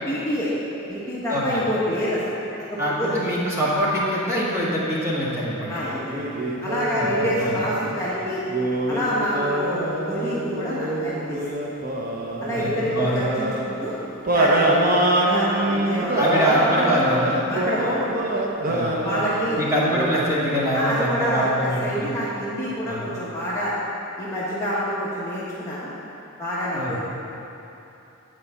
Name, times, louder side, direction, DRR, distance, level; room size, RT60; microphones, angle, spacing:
voice 1, 0.1-0.5 0.9-2.4 2.7-3.1 5.7-6.3 6.6-8.4 8.9-11.4 12.4-14.0 14.3-16.4 17.5-18.0 19.0-19.6 20.7-23.7 24.2-25.9 26.4-27.0, equal, 15° left, -9 dB, 1.3 m, -27 dB
voice 2, 1.3-1.6 2.8-5.7 7.0-7.6 12.5-13.2 16.2-17.4 18.7-19.1 19.6-22.1 22.9-23.1 26.7-27.0, equal, 15° right, -8 dB, 1.9 m, -24 dB
sound 1, 6.1-7.9 8.5-13.7 14.3-21.0, right 1 dB, 45° right, 0.9 m, -25 dB
9.8 x 4.8 x 7.9 m, 2.9 s
head